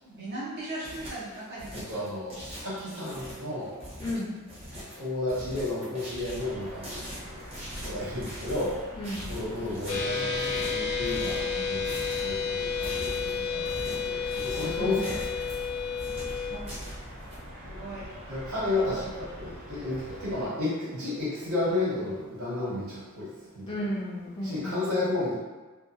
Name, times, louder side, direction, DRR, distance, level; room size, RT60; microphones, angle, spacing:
voice 1, 0.0-1.9 16.3-16.8 17.6-18.2 24.5-24.7, right 1 dB, 45° right, -7 dB, 0.6 m, -39 dB
sound 1, 0.6-17.4, equal, 25° right, 0.9 m, -42 dB
voice 2, 1.7-3.7 5.0-7.1 7.3-7.4 7.8-8.8 9.3-15.2 18.3-23.8 24.4-25.3, left 2 dB, 90° right, -10 dB, 1.4 m, -32 dB
voice 3, 4.0-4.4 9.0-9.3 14.8-15.1 18.8-18.9 23.6-25.0, left 1 dB, 25° left, -4 dB, 0.4 m, -33 dB
sound 2, 6.3-20.5, equal, 70° right, 0.9 m, -42 dB
sound 3, 9.9-16.6, left 5 dB, 85° left, 0.7 m, -31 dB
2.7 x 2.2 x 2.4 m, 1.2 s
head